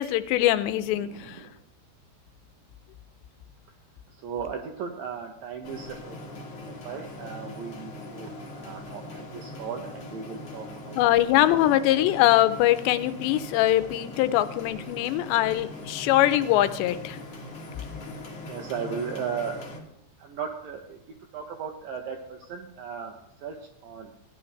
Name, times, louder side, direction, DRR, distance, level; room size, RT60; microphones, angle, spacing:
voice 1, 0.0-1.4 11.0-17.2, left 14 dB, 90° left, 12 dB, 2.8 m, -22 dB
voice 2, 1.1-1.5 4.2-11.0 18.5-19.8 20.2-21.0 21.3-23.1 23.4-23.6 23.8-24.1, right 6 dB, 80° right, 3 dB, 2.1 m, -36 dB
sound 1, 5.6-19.8, left 2 dB, 50° left, 1.9 m, -41 dB
16.5 x 9.9 x 3.3 m, 0.83 s
omnidirectional pair, 5.0 m